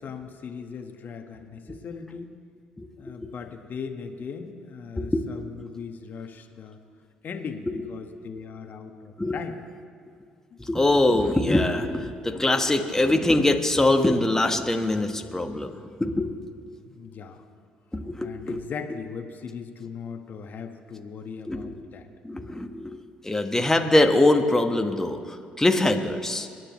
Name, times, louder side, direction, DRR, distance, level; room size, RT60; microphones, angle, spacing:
voice 1, 0.0-2.3 3.0-6.8 7.2-9.5 10.5-10.6 16.3-16.6 16.9-17.4 18.2-22.1, left 6 dB, 50° left, 5 dB, 1.5 m, -38 dB
voice 2, 2.8-3.3 5.0-5.2 9.2-9.4 10.6-16.3 17.9-18.6 21.5-21.7 22.2-23.0 23.2-26.5, left 2 dB, 10° left, 4 dB, 1.4 m, -23 dB
29.0 x 9.7 x 3.2 m, 2.2 s
hypercardioid pair, 50°, 4 cm